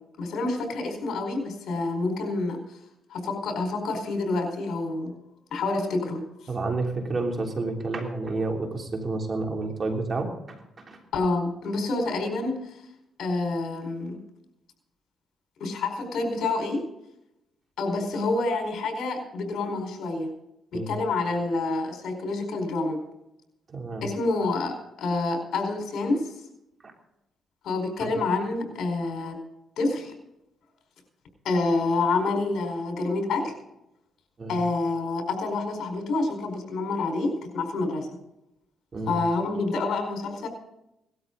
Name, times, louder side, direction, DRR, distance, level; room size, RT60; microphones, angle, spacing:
voice 1, 0.2-2.6 3.1-5.1 5.5-6.2 11.1-12.8 13.2-14.2 15.6-16.8 17.8-20.3 20.7-23.0 24.0-26.3 27.6-29.4 29.8-30.1 31.4-33.5 34.5-38.1 39.1-40.5, left 3 dB, 65° left, 4 dB, 4.7 m, -27 dB
voice 2, 6.5-11.0 20.7-20.9 23.7-24.0 28.0-28.1 34.4-34.6 38.9-39.2, right 3 dB, 35° right, 2 dB, 3.3 m, -30 dB
18.5 x 13.0 x 4.0 m, 0.86 s
cardioid pair, 90°, 0 cm